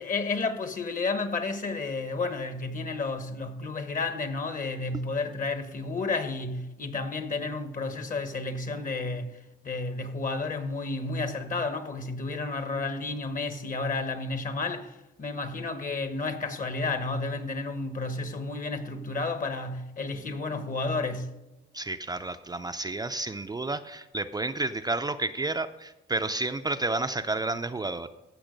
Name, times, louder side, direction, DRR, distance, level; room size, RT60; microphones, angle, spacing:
voice 1, 0.0-9.3 9.6-21.3, left 3 dB, 40° left, 1.4 m, -31 dB
voice 2, 21.7-28.1, right 2 dB, 20° right, 0.5 m, -31 dB
15.0 x 6.2 x 5.2 m
cardioid pair, 90°, 20 cm